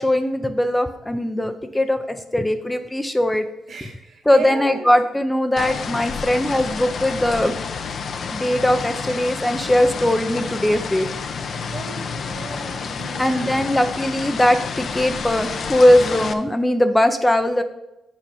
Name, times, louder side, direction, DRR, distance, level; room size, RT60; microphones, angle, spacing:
voice 1, 0.0-3.5 4.3-7.6 8.3-11.1 13.2-17.6, left 1 dB, 10° left, 7 dB, 0.5 m, -20 dB
voice 2, 3.7-4.9 11.7-13.7, right 4 dB, 60° right, 2 dB, 2.0 m, -36 dB
sound 1, 5.6-16.3, left 5 dB, 55° left, 0.6 m, -29 dB
7.4 x 5.2 x 5.6 m, 0.96 s
cardioid pair, 90°, 0 cm